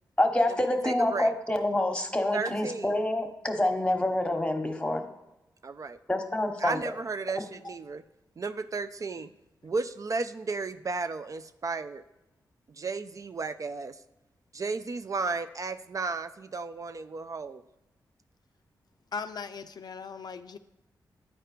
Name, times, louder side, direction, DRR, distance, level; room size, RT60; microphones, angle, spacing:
voice 1, 0.2-5.0 6.1-6.9, left 1 dB, 15° left, 6 dB, 1.2 m, -27 dB
voice 2, 0.8-1.3 2.3-2.9 5.6-6.0 6.6-8.0 8.4-9.3 9.6-12.0 12.8-14.0 14.5-17.6, right 4 dB, 45° right, 11 dB, 0.4 m, -33 dB
voice 3, 19.1-20.6, left 5 dB, 60° left, 9 dB, 0.4 m, -38 dB
9.1 x 4.4 x 4.9 m, 0.95 s
cardioid pair, 50°, 8 cm